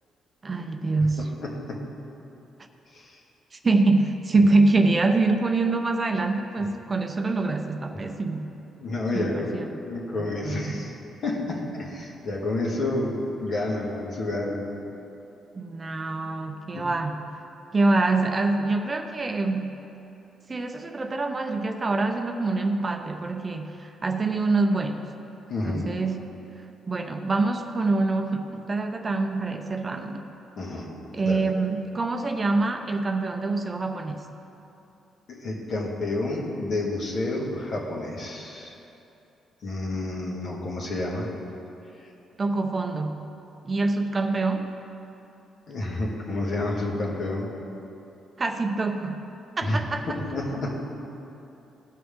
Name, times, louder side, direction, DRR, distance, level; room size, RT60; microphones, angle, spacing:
voice 1, 0.4-1.3 3.5-8.5 9.1-9.7 10.2-10.8 15.5-17.2 17.7-19.8 20.5-25.1 25.6-26.3 26.9-30.3 31.1-34.3 42.4-43.2 43.6-44.7 48.4-49.3 49.6-50.2, right 3 dB, 30° right, 5 dB, 0.7 m, -25 dB
voice 2, 1.4-1.8 2.9-3.1 8.8-9.6 9.8-10.9 11.2-14.6 16.7-16.9 25.5-25.9 30.6-30.9 31.2-31.4 35.3-38.7 39.6-41.3 45.7-47.5 49.6-49.8 50.1-50.8, left 2 dB, 60° left, -3 dB, 2.3 m, -29 dB
17.5 x 6.1 x 3.7 m, 2.9 s
cardioid pair, 90°, 0 cm